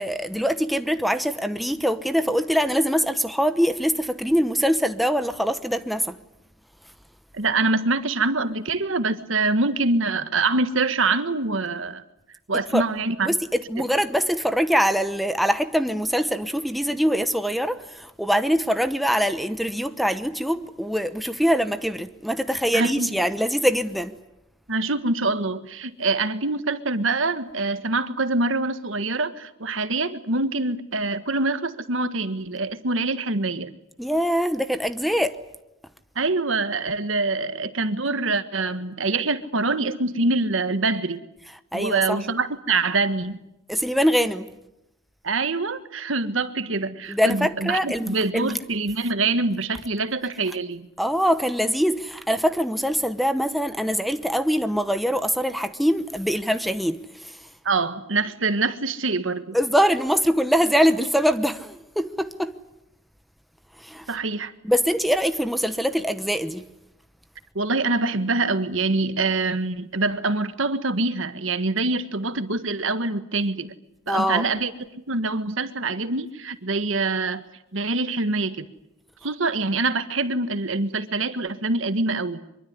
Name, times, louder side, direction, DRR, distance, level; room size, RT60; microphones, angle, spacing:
voice 1, 0.0-6.2 12.7-12.8 13.2-24.1 34.0-35.4 41.7-42.2 43.7-44.5 47.1-48.6 51.0-57.4 59.5-62.5 63.8-64.1 64.6-66.6 74.1-74.4, equal, ahead, 0.9 m, -23 dB
voice 2, 7.3-12.0 12.5-13.3 22.7-23.1 24.7-33.7 36.1-41.2 41.7-43.4 45.2-50.9 57.6-59.6 64.1-64.5 67.5-73.7 74.1-74.7 75.1-77.4 77.7-78.7 79.2-82.4, right 3 dB, 80° right, 1.6 m, -25 dB
24.0 x 23.0 x 9.6 m
head